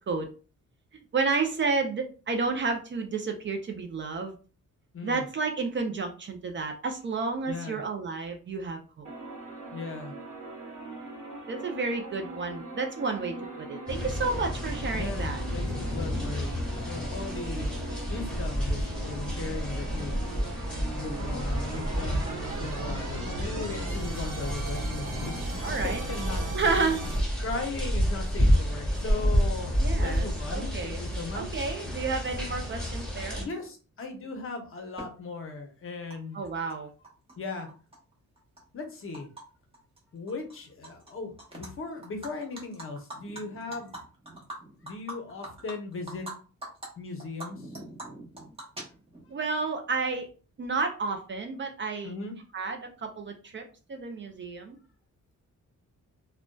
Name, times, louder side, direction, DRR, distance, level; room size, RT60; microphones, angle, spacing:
voice 1, 1.1-4.4 5.0-9.1 11.5-15.4 25.6-26.0 26.5-27.1 29.8-31.0 31.3-33.5 36.3-36.9 49.3-50.3 50.6-52.1 52.5-53.6 53.9-54.8, right 4 dB, 40° right, 4 dB, 0.4 m, -31 dB
voice 2, 4.9-5.3 7.5-7.8 9.7-10.1 14.9-17.7 18.1-20.2 21.0-26.4 27.4-31.6 33.4-36.4 37.4-37.7 38.7-39.3 40.1-44.0 44.8-46.3 47.0-47.8 52.0-52.3, left 3 dB, 45° left, 4 dB, 0.7 m, -38 dB
sound 1, 9.0-27.2, right 2 dB, 75° right, 0.9 m, -38 dB
sound 2, 13.9-33.4, equal, 5° left, 1.1 m, -30 dB
Animal, 35.0-35.1 36.1-36.2 36.4-37.3 37.7-39.4 39.7-40.0 40.3-41.1 41.4-41.7 42.0-46.3 46.6-46.9 47.2-49.3, right 1 dB, 20° right, 0.8 m, -43 dB
2.6 x 2.1 x 2.2 m, 0.36 s
cardioid pair, 105°, 31 cm